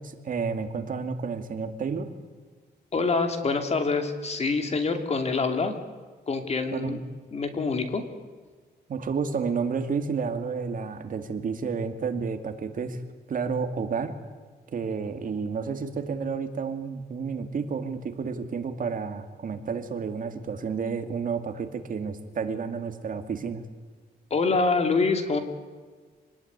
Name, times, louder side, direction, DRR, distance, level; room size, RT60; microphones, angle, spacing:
voice 1, 0.0-2.1 6.7-7.0 8.9-13.0 13.3-14.1 14.7-23.6, right 5 dB, 50° right, 7 dB, 2.4 m, -31 dB
voice 2, 2.9-5.7 6.3-7.0 7.3-8.0 24.3-25.4, left 4 dB, 40° left, 7 dB, 2.6 m, -25 dB
26.5 x 19.5 x 9.7 m, 1.5 s
wide cardioid pair, 145°, 18 cm